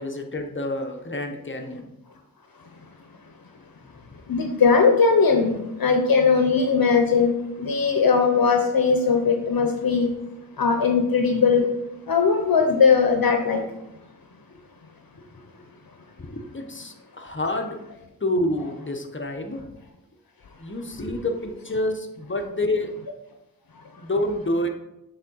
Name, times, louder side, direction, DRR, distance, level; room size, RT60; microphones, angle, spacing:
voice 1, 0.0-1.9 16.2-17.8 18.2-19.6 20.6-22.9 24.0-24.7, left 1 dB, 35° left, 3 dB, 0.8 m, -28 dB
voice 2, 4.3-10.1 10.6-11.7 12.1-13.6 23.7-23.8, left 5 dB, 70° left, 4 dB, 0.7 m, -19 dB
7.0 x 3.7 x 4.0 m, 0.89 s
wide cardioid pair, 60°, 36 cm